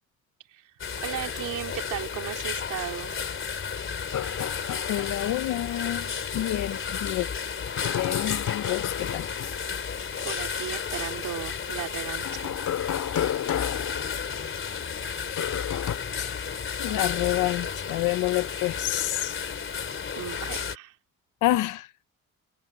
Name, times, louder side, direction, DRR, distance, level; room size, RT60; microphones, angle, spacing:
sound 1, 0.8-20.8, left 6 dB, 45° left, 3.2 m, -33 dB
voice 1, 1.0-3.2 10.2-12.6 16.2-16.4 20.1-21.0, right 12 dB, 80° right, 3.2 m, -36 dB
sound 2, 4.1-5.6 5.9-6.0 7.7-9.7 12.2-14.7 15.4-16.0, left 10 dB, 70° left, 4.1 m, -32 dB
voice 2, 4.9-6.1 6.3-7.3 8.0-9.3 15.3-15.4 16.2-16.5 16.8-19.4 21.4-21.9, left 15 dB, 85° left, 1.0 m, -28 dB
cardioid pair, 90°, 30 cm